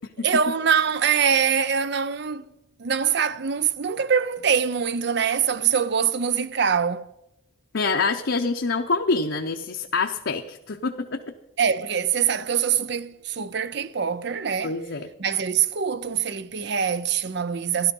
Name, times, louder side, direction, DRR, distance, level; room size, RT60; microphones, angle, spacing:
voice 1, 0.2-2.4 2.8-7.1 11.6-14.7 15.2-17.9, right 7 dB, 55° right, 0.5 m, -24 dB
voice 2, 7.7-11.2 14.6-15.1, left 4 dB, 65° left, 0.7 m, -26 dB
13.5 x 12.0 x 5.3 m
head